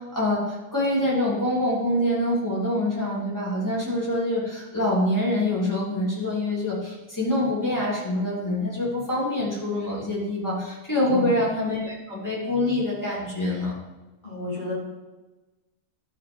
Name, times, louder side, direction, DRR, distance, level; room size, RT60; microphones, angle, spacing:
voice 1, 0.0-13.7, left 1 dB, 10° left, -7 dB, 2.8 m, -25 dB
voice 2, 14.2-14.7, left 2 dB, 30° left, -8 dB, 3.3 m, -30 dB
11.0 x 4.1 x 5.1 m, 1.1 s
omnidirectional pair, 1.6 m